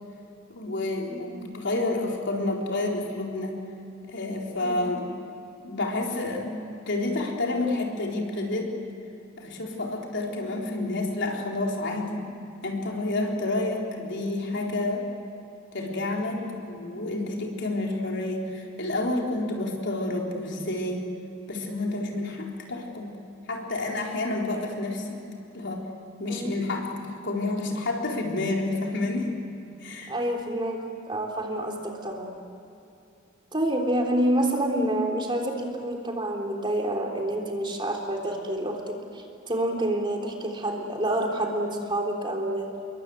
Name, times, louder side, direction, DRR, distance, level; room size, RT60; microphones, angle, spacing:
voice 1, 0.5-3.7 4.1-5.1 5.6-8.7 9.4-12.3 12.6-15.1 15.7-21.1 21.5-23.2 23.5-25.2 25.5-25.9 26.2-29.3 29.8-30.1, left 2 dB, 60° left, -1 dB, 4.2 m, -29 dB
voice 2, 30.1-30.8 31.1-32.3 33.5-42.7, right 1 dB, 25° right, 1 dB, 3.4 m, -28 dB
28.5 x 23.0 x 8.0 m, 2.8 s
head